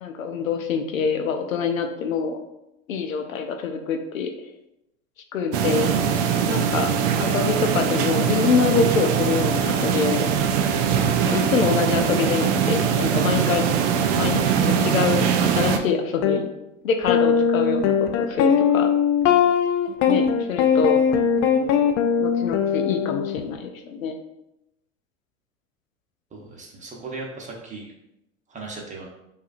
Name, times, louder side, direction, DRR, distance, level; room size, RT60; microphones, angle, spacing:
voice 1, 0.0-2.4 2.9-4.3 5.3-6.0 6.5-6.9 7.2-10.2 11.2-13.6 14.1-15.3 15.5-16.5 16.8-18.9 20.1-21.0 22.2-24.1, left 5 dB, 90° left, 5 dB, 0.6 m, -25 dB
sound 1, 5.5-15.8, right 7 dB, 40° right, 0.4 m, -22 dB
sound 2, 16.2-16.4 17.1-23.4, left 7 dB, 45° left, 0.4 m, -20 dB
voice 2, 26.3-27.9 28.5-29.1, right 3 dB, 20° right, -1 dB, 0.8 m, -37 dB
4.7 x 2.6 x 2.5 m, 0.88 s
hypercardioid pair, 95°, 39 cm